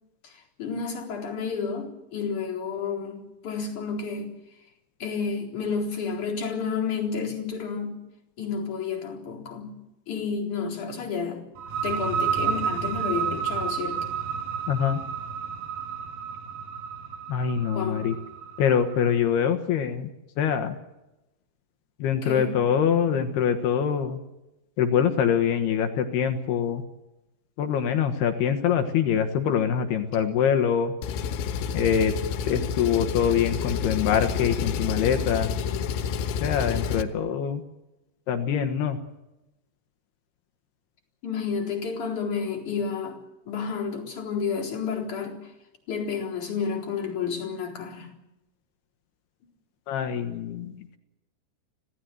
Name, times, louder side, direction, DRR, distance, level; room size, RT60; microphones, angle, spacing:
voice 1, 0.6-4.3 5.0-8.0 8.4-9.8 10.1-11.4 11.8-14.0 17.7-18.1 22.2-22.6 41.2-43.2 43.5-45.5 45.9-48.1, left 6 dB, 45° left, 5.3 m, -30 dB
sound 1, 11.6-19.1, right 7 dB, 60° right, 2.9 m, -31 dB
voice 2, 14.7-15.0 17.3-18.1 18.6-20.1 20.4-20.8 22.0-24.2 24.8-26.8 27.6-30.9 31.7-32.1 32.4-35.5 36.4-37.6 38.3-39.0 49.9-51.0, left 8 dB, 70° left, 3.0 m, -24 dB
Engine, 31.0-37.0, left 6 dB, 85° left, 3.6 m, -29 dB
25.5 x 17.5 x 7.9 m
omnidirectional pair, 5.2 m